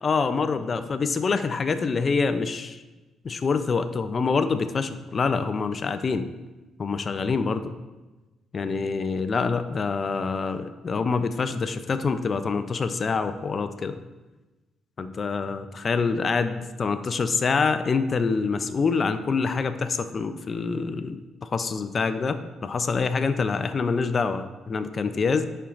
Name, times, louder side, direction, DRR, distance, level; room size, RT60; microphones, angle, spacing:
voice 1, 0.0-2.8 3.2-6.3 6.8-7.7 8.5-14.0 15.0-25.4, left 4 dB, 40° left, 10 dB, 0.5 m, -26 dB
11.0 x 4.5 x 2.5 m, 1.1 s
cardioid pair, 90°, 0 cm